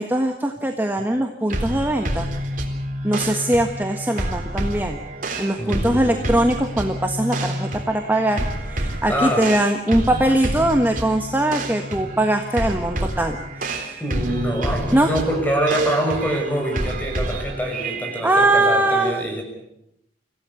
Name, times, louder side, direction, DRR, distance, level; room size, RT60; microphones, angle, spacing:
voice 1, 0.0-2.3 3.0-5.0 5.4-14.0 14.9-15.1 18.2-19.2, right 1 dB, 10° right, 4 dB, 1.5 m, -21 dB
sound 1, 1.5-18.2, right 1 dB, 50° right, 3.9 m, -28 dB
voice 2, 5.6-6.3 9.1-9.5 14.0-19.4, right 1 dB, 10° left, 3 dB, 6.1 m, -24 dB
25.5 x 16.5 x 8.3 m, 0.82 s
head